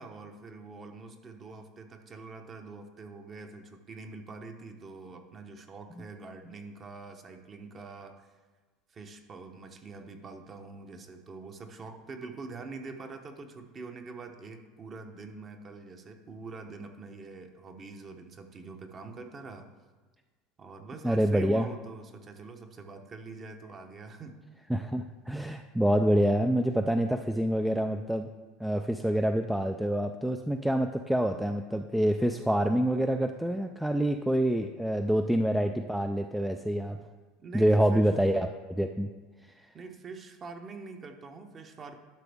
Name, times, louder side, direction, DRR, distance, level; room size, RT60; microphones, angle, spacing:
voice 1, 0.0-8.3 8.9-19.7 20.6-24.4 37.4-38.1 39.7-42.0, right 3 dB, 30° right, 6 dB, 0.9 m, -44 dB
voice 2, 21.0-21.7 24.7-28.3 28.6-37.0 37.5-39.1, right 1 dB, 5° right, 6 dB, 0.3 m, -26 dB
12.0 x 6.0 x 3.5 m, 1.4 s
supercardioid pair, 130°, 0 cm